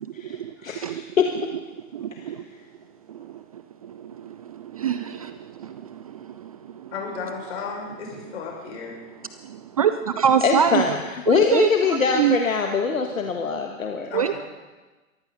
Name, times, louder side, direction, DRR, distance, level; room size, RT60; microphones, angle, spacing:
voice 1, 0.0-0.5 0.8-1.0 1.9-2.4 3.1-6.9 9.4-11.0 11.3-11.7 12.1-12.4 14.1-14.4, right 8 dB, 30° right, 11 dB, 0.4 m, -26 dB
voice 2, 0.6-1.3 10.4-14.1, left 5 dB, 70° left, 4 dB, 1.4 m, -23 dB
voice 3, 6.9-9.0 14.1-14.4, left 5 dB, 50° left, -1 dB, 5.9 m, -34 dB
22.5 x 14.5 x 4.0 m, 1.2 s
figure-of-eight pair, 110°, 42 cm